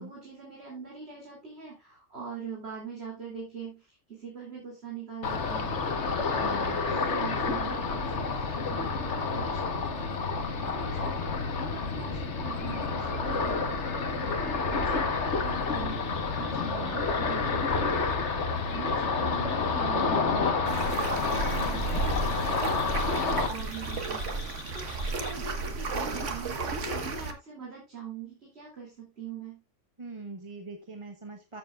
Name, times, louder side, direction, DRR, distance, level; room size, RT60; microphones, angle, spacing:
voice 1, 0.0-17.9 18.7-29.6, right 6 dB, 55° right, -3 dB, 3.2 m, -43 dB
Ocean, 5.2-23.5, left 4 dB, 70° left, 1.5 m, -29 dB
voice 2, 6.3-6.8 16.5-17.0 30.0-31.6, right 3 dB, 25° right, 3 dB, 1.2 m, -42 dB
sound 1, 15.7-25.3, left 4 dB, 50° left, 1.4 m, -47 dB
sound 2, 20.7-27.3, right 3 dB, 80° right, 1.8 m, -33 dB
13.5 x 7.5 x 2.4 m, 0.26 s
omnidirectional pair, 1.2 m